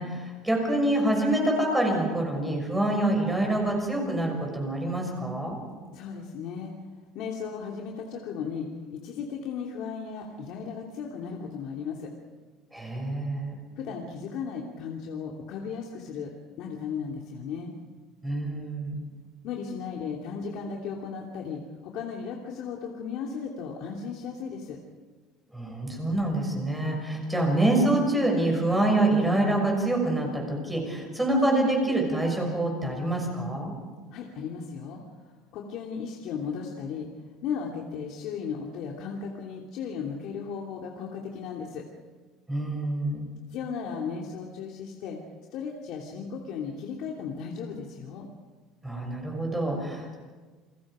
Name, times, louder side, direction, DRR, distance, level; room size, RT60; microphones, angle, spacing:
voice 1, 0.0-5.6 12.7-13.6 18.2-19.0 25.5-33.7 42.5-43.3 48.8-50.1, right 1 dB, 10° right, 1 dB, 6.5 m, -26 dB
voice 2, 5.9-6.7 7.1-12.1 13.8-16.3 16.6-17.7 19.4-24.8 34.1-35.0 35.5-37.1 37.4-41.8 43.5-45.2 45.5-48.3, left 6 dB, 60° left, -1 dB, 3.0 m, -35 dB
29.0 x 21.0 x 5.1 m, 1.4 s
cardioid pair, 145°, 0 cm